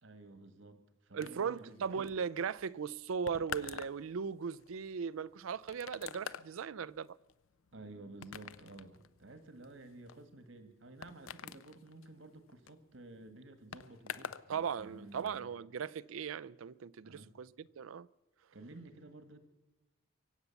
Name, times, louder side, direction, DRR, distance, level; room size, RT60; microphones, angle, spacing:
voice 1, 0.0-1.8 2.0-2.1 7.7-15.5 17.0-17.3 18.5-19.4, right 2 dB, 70° right, 1.5 m, -53 dB
voice 2, 1.1-7.2 14.5-18.1, right 6 dB, 85° right, 0.4 m, -38 dB
sound 1, 1.2-14.5 14.8-15.4, left 7 dB, 80° left, 0.5 m, -48 dB
24.0 x 8.2 x 7.0 m
head